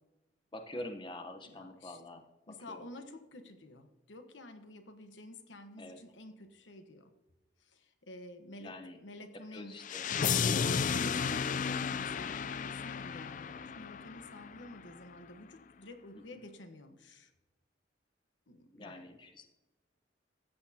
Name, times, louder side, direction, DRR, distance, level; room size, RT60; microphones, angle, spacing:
voice 1, 0.5-2.2 2.7-2.9 5.8-6.0 8.6-9.0 9.5-10.0 16.3-16.4 18.7-19.4, left 1 dB, 25° left, 6 dB, 1.0 m, -45 dB
voice 2, 1.5-2.0 2.5-7.1 7.6-9.8 10.4-17.3 18.5-19.0, left 1 dB, 90° left, 7 dB, 1.2 m, -50 dB
sound 1, 9.8-14.8, left 6 dB, 45° left, 0.4 m, -33 dB
14.5 x 9.0 x 2.9 m, 1.1 s
head